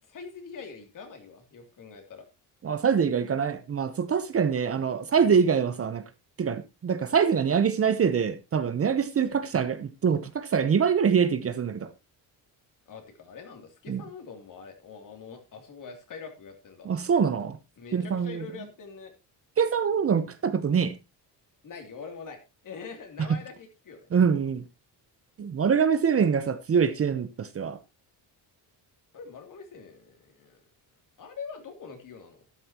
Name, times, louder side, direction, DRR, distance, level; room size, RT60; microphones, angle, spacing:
voice 1, 0.1-2.3 12.9-16.9 17.8-19.1 21.6-24.1 29.1-30.6 31.2-32.4, left 5 dB, 50° left, 2.9 m, -44 dB
voice 2, 2.6-6.0 6.4-11.9 13.9-14.0 16.9-17.6 17.9-18.4 19.6-20.9 24.1-24.6 25.4-27.8, right 6 dB, 35° right, 0.8 m, -24 dB
12.5 x 11.5 x 2.9 m
cardioid pair, 145°, 41 cm